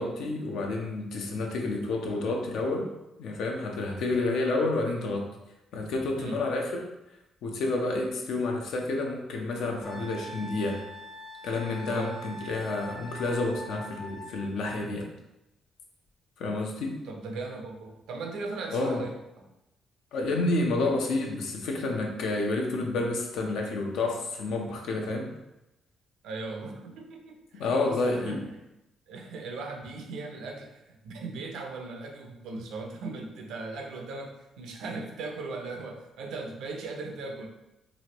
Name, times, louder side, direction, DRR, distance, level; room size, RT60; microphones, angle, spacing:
voice 1, 0.0-2.9 3.2-5.3 5.7-6.9 7.4-10.9 11.4-15.1 16.4-17.0 18.7-19.0 20.1-25.3 27.5-28.4, left 2 dB, 80° left, 2 dB, 0.5 m, -29 dB
voice 2, 6.1-6.4 11.8-12.2 17.0-19.5 26.2-28.6 29.1-37.5, right 3 dB, 80° right, 3 dB, 0.5 m, -38 dB
Wind instrument woodwind instrument, 9.8-14.7, right 1 dB, 50° left, 1.1 m, -43 dB
3.0 x 2.5 x 2.9 m, 0.93 s
cardioid pair, 90°, 0 cm